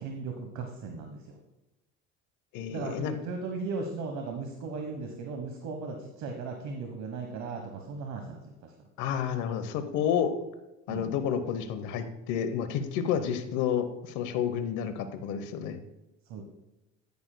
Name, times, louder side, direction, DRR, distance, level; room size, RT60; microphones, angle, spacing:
voice 1, 0.0-1.4 2.7-8.5 10.9-11.1 16.3-16.4, right 4 dB, 65° right, 3 dB, 1.2 m, -37 dB
voice 2, 2.5-3.1 9.0-10.3 10.9-15.8, left 8 dB, 80° left, 9 dB, 1.0 m, -30 dB
10.5 x 9.6 x 2.2 m, 0.98 s
cardioid pair, 110°, 29 cm